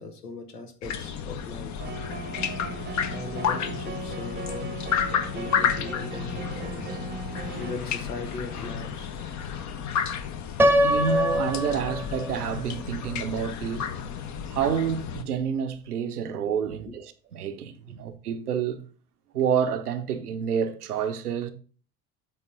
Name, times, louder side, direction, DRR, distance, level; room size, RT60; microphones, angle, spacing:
voice 1, 0.0-1.7 3.1-4.7 5.3-9.8, left 3 dB, 80° left, 1.3 m, -39 dB
sound 1, 0.8-15.2, left 8 dB, 40° left, 0.9 m, -32 dB
sound 2, 1.8-7.8, right 4 dB, 20° right, 0.9 m, -38 dB
Piano, 10.6-12.6, equal, 5° right, 0.4 m, -23 dB
voice 2, 10.8-13.9 14.5-18.8 19.3-21.5, right 7 dB, 80° right, 0.8 m, -28 dB
7.8 x 3.6 x 5.1 m
figure-of-eight pair, 65°, 45 cm